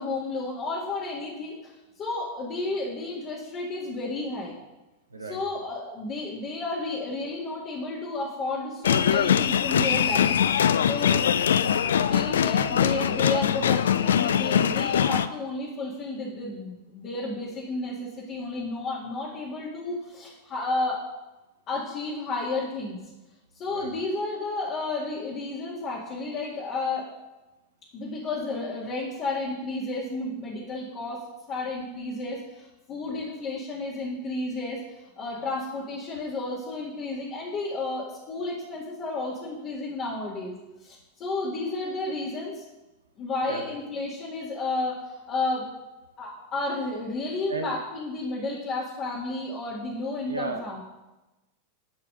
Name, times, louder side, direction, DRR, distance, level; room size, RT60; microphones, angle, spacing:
voice 1, 0.0-1.7 2.0-4.5 5.3-11.3 12.1-21.0 21.7-23.0 23.6-27.0 27.9-31.2 31.5-42.6 43.2-45.7 46.2-50.8, left 2 dB, 35° left, -5 dB, 2.1 m, -32 dB
voice 2, 5.1-5.4 23.7-23.9 33.0-33.2 43.4-43.7 47.5-47.8 50.3-50.7, right 2 dB, 80° right, 6 dB, 1.2 m, -34 dB
sound 1, 8.8-15.3, left 8 dB, 65° left, 0.4 m, -22 dB
11.0 x 4.9 x 6.4 m, 1.0 s
figure-of-eight pair, 90°, 0 cm